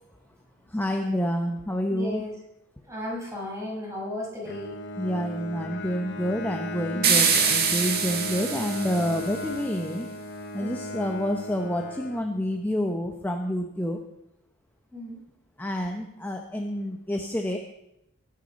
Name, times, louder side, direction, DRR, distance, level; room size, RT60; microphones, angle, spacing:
voice 1, 0.7-2.2 5.0-10.1 10.5-14.0 15.6-17.6, equal, 10° left, 3 dB, 0.9 m, -28 dB
voice 2, 1.9-2.3 2.9-4.7 6.9-7.3 10.6-10.7 14.9-15.2, left 1 dB, 15° right, -3 dB, 6.0 m, -34 dB
Bowed string instrument, 4.4-12.7, left 1 dB, 55° left, 1.3 m, -37 dB
sound 1, 7.0-9.4, right 6 dB, 50° right, 2.0 m, -24 dB
19.5 x 9.5 x 5.3 m, 0.84 s
head